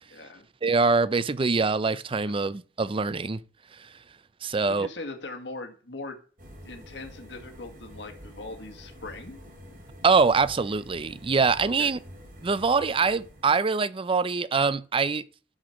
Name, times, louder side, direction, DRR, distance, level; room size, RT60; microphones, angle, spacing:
voice 1, 0.1-0.5 4.7-6.2 6.6-9.5 11.6-11.9, left 2 dB, 70° left, 1.8 m, -40 dB
voice 2, 0.6-3.4 4.4-4.9 10.0-12.0 12.4-15.2, right 4 dB, 30° right, 0.5 m, -24 dB
sound 1, 6.4-13.4, equal, 50° right, 3.5 m, -47 dB
11.0 x 5.1 x 5.9 m
head